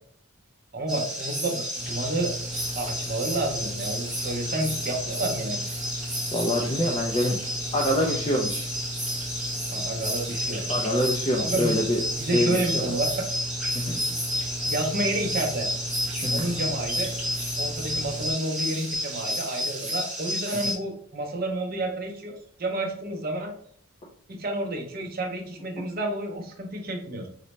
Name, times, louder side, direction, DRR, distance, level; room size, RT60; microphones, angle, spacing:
voice 1, 0.7-2.4 2.8-5.6 9.7-10.6 11.4-11.8 12.2-13.3 13.9-14.2 14.7-15.7 16.3-17.1 17.6-23.5 24.3-27.3, right 1 dB, 40° right, 2 dB, 0.6 m, -30 dB
sound 1, 0.9-20.7, equal, ahead, 0.7 m, -31 dB
sound 2, 1.7-18.3, left 1 dB, 80° left, 0.9 m, -37 dB
voice 2, 6.3-7.4 7.7-8.7 10.7-12.0 12.3-12.8 13.7-14.0 16.2-16.5, equal, 25° left, -1 dB, 0.4 m, -25 dB
3.9 x 2.1 x 3.0 m, 0.63 s
head